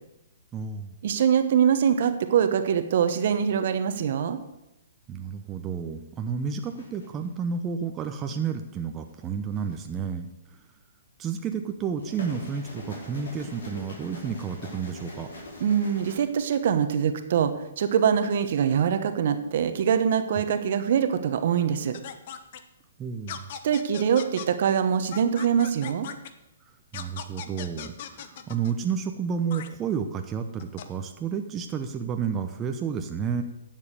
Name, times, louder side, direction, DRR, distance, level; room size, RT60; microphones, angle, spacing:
voice 1, 0.5-0.9 5.1-10.3 11.2-15.3 23.0-23.5 26.9-33.4, right 6 dB, 20° right, 5 dB, 0.9 m, -31 dB
voice 2, 1.0-4.4 15.6-22.0 23.6-26.1, right 8 dB, 55° right, 9 dB, 1.2 m, -23 dB
sound 1, 6.6-7.3 9.2-9.9 11.8-16.1, left 1 dB, 70° left, 4.5 m, -43 dB
sound 2, 21.9-22.6 23.3-24.5 25.1-26.3 26.9-28.7 29.5-29.7 30.6-30.8, left 9 dB, 50° left, 1.0 m, -38 dB
11.0 x 7.5 x 6.7 m, 0.91 s
hypercardioid pair, 130°, 0 cm